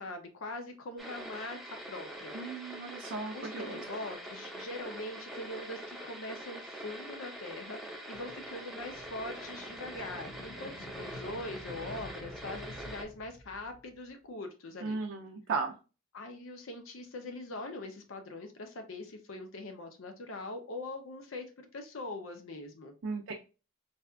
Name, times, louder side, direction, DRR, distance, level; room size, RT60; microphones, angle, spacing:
voice 1, 0.0-2.3 3.3-15.0 16.1-22.9, left 2 dB, 70° left, 5 dB, 0.6 m, -42 dB
sound 1, 1.0-13.0, right 1 dB, ahead, 0.6 m, -44 dB
voice 2, 2.3-3.8 14.8-15.7 23.0-23.3, right 4 dB, 65° right, 1 dB, 0.4 m, -36 dB
sound 2, 8.1-14.0, left 2 dB, 85° left, 1.7 m, -49 dB
4.1 x 2.3 x 2.3 m, 0.32 s
head